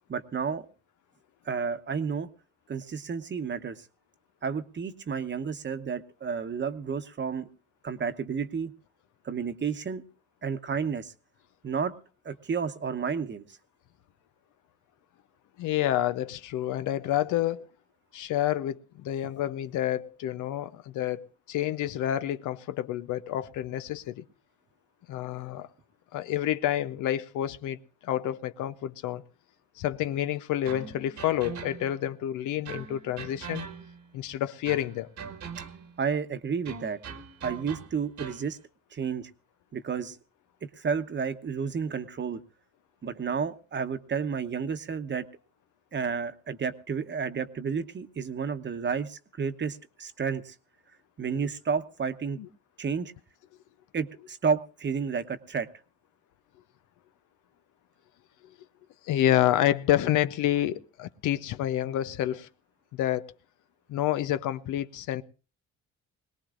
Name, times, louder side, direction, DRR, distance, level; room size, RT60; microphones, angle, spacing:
voice 1, 0.1-0.7 1.5-2.3 2.7-3.9 4.4-7.5 7.8-8.7 9.2-10.0 10.4-11.1 11.6-11.9 12.2-13.4 36.0-37.0 37.4-38.6 38.9-39.3 39.7-40.2 40.6-42.4 43.0-45.3 45.9-50.5 51.2-52.4 52.8-53.1 53.9-55.7, right 6 dB, 35° right, 1.0 m, -31 dB
voice 2, 15.6-17.6 18.1-24.3 25.1-25.7 26.1-29.2 29.8-33.7 34.1-35.1 52.4-52.5 59.0-62.5 62.9-63.3 63.9-65.2, left 12 dB, 90° left, 0.7 m, -28 dB
sound 1, 30.7-32.1 32.7-34.1 34.7-36.0 36.7-38.5, right 6 dB, 70° right, 1.6 m, -41 dB
21.5 x 18.5 x 2.5 m
cardioid pair, 90°, 30 cm